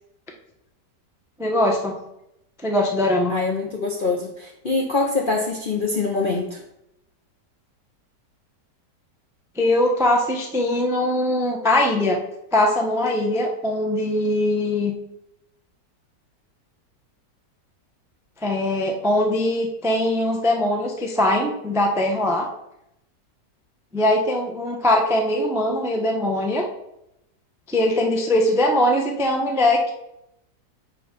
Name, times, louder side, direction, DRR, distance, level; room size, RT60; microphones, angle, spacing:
voice 1, 1.4-1.9 2.6-3.4 9.6-12.2 12.5-14.9 18.4-22.5 23.9-26.7 27.7-29.9, left 1 dB, 5° right, 1 dB, 0.4 m, -21 dB
voice 2, 3.3-6.6, left 3 dB, 50° left, 0 dB, 0.6 m, -24 dB
8.5 x 3.4 x 5.2 m, 0.82 s
omnidirectional pair, 1.8 m